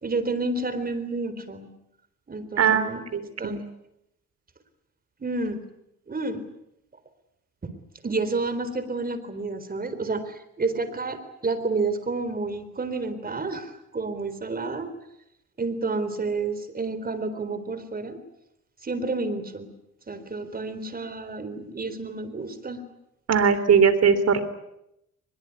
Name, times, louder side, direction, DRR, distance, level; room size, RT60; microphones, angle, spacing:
voice 1, 0.0-1.7 2.3-3.6 5.2-5.6 6.1-6.4 7.6-7.8 8.0-14.9 15.6-18.2 18.8-19.7 20.1-22.8, right 3 dB, 30° right, 12 dB, 4.0 m, -30 dB
voice 2, 2.6-2.9 3.4-3.6 23.3-24.4, right 6 dB, 55° right, 13 dB, 3.5 m, -19 dB
23.5 x 21.5 x 9.6 m, 0.82 s
cardioid pair, 90°, 30 cm